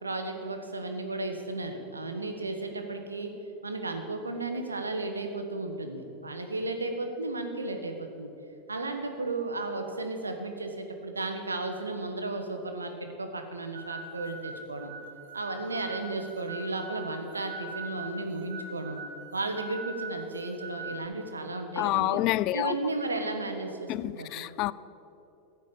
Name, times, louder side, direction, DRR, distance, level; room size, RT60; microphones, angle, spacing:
voice 1, 0.0-3.3 3.6-8.3 8.7-14.9 15.3-19.0 19.3-22.2 22.5-24.5, right 2 dB, 85° right, 1.3 m, -34 dB
sound 1, 13.7-21.0, right 2 dB, 70° right, 1.6 m, -42 dB
voice 2, 21.8-22.8 23.9-24.7, left 17 dB, 45° left, 0.4 m, -28 dB
15.0 x 8.3 x 7.1 m
figure-of-eight pair, 85°, 0 cm